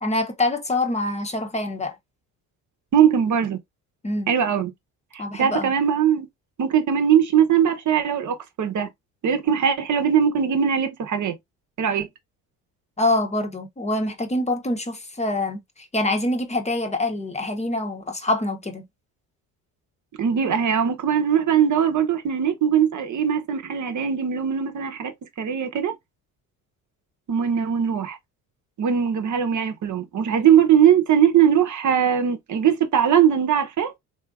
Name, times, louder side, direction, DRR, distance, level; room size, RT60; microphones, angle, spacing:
voice 1, 0.0-1.9 4.0-4.3 5.2-5.7 13.0-15.6 15.9-18.8, left 2 dB, 15° left, 0.9 m, -25 dB
voice 2, 2.9-3.6 4.3-4.7 5.1-6.3 6.6-8.9 9.2-11.3 11.8-12.1 20.2-25.9 27.3-28.2 28.8-33.9, right 8 dB, 45° right, 0.9 m, -20 dB
3.4 x 2.6 x 2.3 m
supercardioid pair, 65°, 41 cm